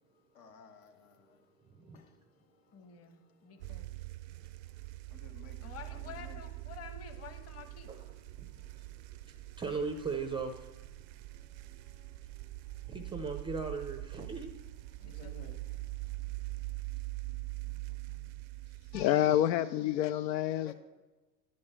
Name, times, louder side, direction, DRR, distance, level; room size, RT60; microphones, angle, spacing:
voice 1, 0.3-1.4 5.1-6.4 19.1-19.4 20.6-20.7, left 6 dB, 70° left, 1.8 m, -54 dB
voice 2, 1.7-2.1 5.3-5.5 8.3-9.4 11.3-13.0 15.0-16.3, left 3 dB, 45° left, 2.2 m, -59 dB
voice 3, 2.7-3.9 5.6-7.9 15.0-15.9 16.2-16.7 17.7-18.4 19.2-20.0, left 7 dB, 30° left, 1.3 m, -51 dB
sound 1, 3.6-19.1, right 19 dB, 80° right, 0.6 m, -43 dB
voice 4, 9.6-10.7 12.9-14.5, right 4 dB, 10° right, 0.4 m, -37 dB
voice 5, 18.9-20.7, left 12 dB, 85° left, 0.6 m, -28 dB
11.0 x 5.4 x 8.3 m
supercardioid pair, 120°, 50 cm